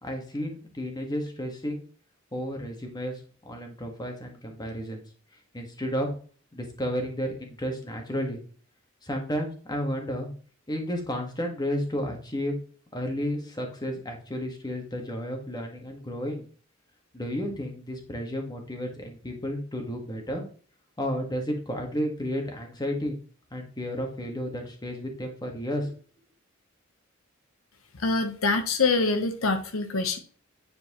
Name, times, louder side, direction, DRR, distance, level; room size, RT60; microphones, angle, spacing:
voice 1, 0.0-1.8 2.3-3.2 3.4-5.0 5.5-6.1 6.5-8.4 9.0-10.3 10.7-12.6 12.9-16.4 17.1-20.4 21.0-23.2 23.5-25.9, equal, 20° left, 3 dB, 1.5 m, -32 dB
voice 2, 28.0-30.2, left 3 dB, 80° left, 7 dB, 0.9 m, -25 dB
9.7 x 4.5 x 3.0 m, 0.42 s
head